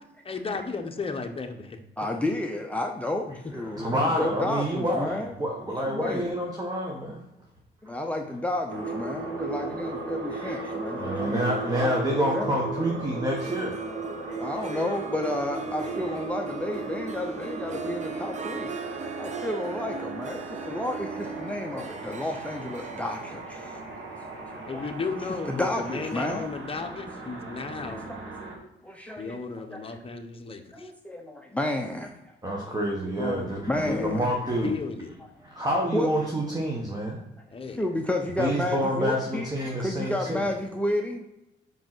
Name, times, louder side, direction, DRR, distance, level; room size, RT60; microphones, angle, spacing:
voice 1, 0.2-1.8 3.3-3.4 24.7-28.1 29.2-30.9 33.2-34.3 34.6-35.2 37.5-37.8, left 4 dB, 30° left, 5 dB, 1.1 m, -34 dB
voice 2, 2.0-5.3 5.6-6.3 7.8-12.6 14.2-18.8 19.2-24.0 24.3-24.9 25.5-26.5 27.8-28.2 28.8-29.8 30.7-32.1 33.2-33.3 33.7-34.3 35.9-36.1 37.7-39.5 39.8-41.3, left 1 dB, 5° left, 3 dB, 0.7 m, -31 dB
voice 3, 3.7-7.2 10.3-13.7 14.2-14.8 32.4-34.7 35.4-37.2 38.4-40.4, equal, 20° right, -1 dB, 1.5 m, -28 dB
sound 1, 8.7-28.6, right 3 dB, 75° right, 1.9 m, -36 dB
Harp, 13.2-26.1, right 6 dB, 35° right, 0.6 m, -39 dB
5.6 x 5.2 x 6.1 m, 0.93 s
cardioid pair, 90°, 20 cm